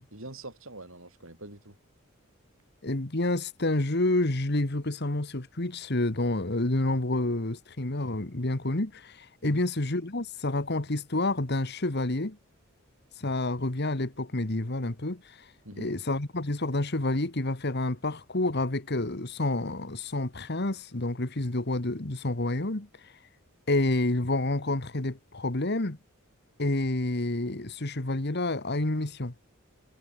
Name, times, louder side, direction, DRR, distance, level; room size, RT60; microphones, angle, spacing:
voice 1, 0.1-1.8 9.4-9.6 15.6-15.9, right 2 dB, 75° right, 7.3 m, -44 dB
voice 2, 2.8-12.4 13.2-15.5 15.8-23.1 23.7-26.0 26.6-29.3, left 2 dB, 55° left, 1.8 m, -29 dB
head